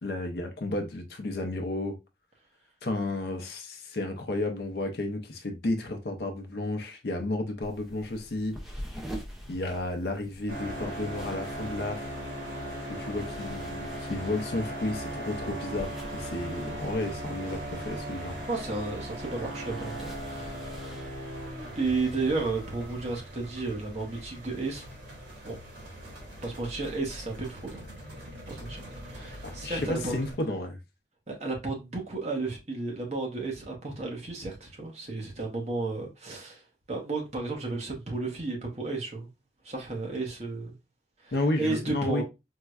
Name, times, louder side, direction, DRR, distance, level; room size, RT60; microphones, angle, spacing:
voice 1, 0.0-2.0 2.8-8.6 9.5-12.1 12.9-18.4 29.6-30.8 41.3-42.2, left 2 dB, 60° left, 0.6 m, -32 dB
sound 1, 7.6-23.2, equal, ahead, 0.5 m, -46 dB
sound 2, 10.5-30.3, right 1 dB, 85° right, 1.3 m, -39 dB
voice 2, 18.5-20.8 21.7-24.9 25.4-25.6 26.4-27.8 28.5-30.2 31.3-39.3 39.6-40.8 41.2-42.2, right 3 dB, 40° right, 0.9 m, -33 dB
4.5 x 2.1 x 2.3 m
head